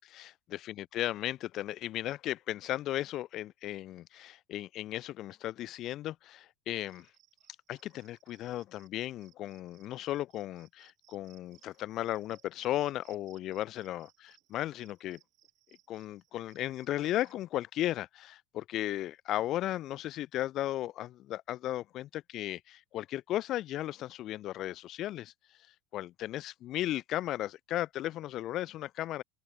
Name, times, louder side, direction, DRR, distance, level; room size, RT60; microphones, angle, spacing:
voice 1, 0.7-7.1 7.7-15.2 15.9-25.3 25.9-29.2, left 14 dB, 40° left, 0.4 m, -35 dB
Cricket, 6.7-17.3, right 17 dB, 45° right, 3.2 m, -66 dB
open air
cardioid pair, 160°, 0 cm